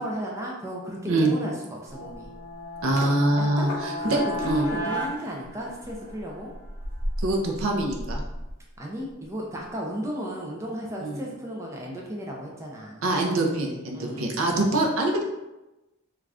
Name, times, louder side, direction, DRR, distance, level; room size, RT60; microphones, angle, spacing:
voice 1, 0.0-2.3 3.4-6.5 8.8-13.1 13.9-14.6, equal, 15° right, -2 dB, 0.3 m, -34 dB
sound 1, 1.9-3.2 3.7-9.3 9.6-9.8, equal, 80° left, 0.7 m, -37 dB
sound 2, 1.9-6.2, left 1 dB, 10° left, 0.9 m, -34 dB
voice 2, 2.8-4.2 4.4-4.7 7.2-8.2 11.0-11.2 13.0-15.2, right 2 dB, 70° right, 1 dB, 0.5 m, -24 dB
2.4 x 2.3 x 3.3 m, 0.99 s
head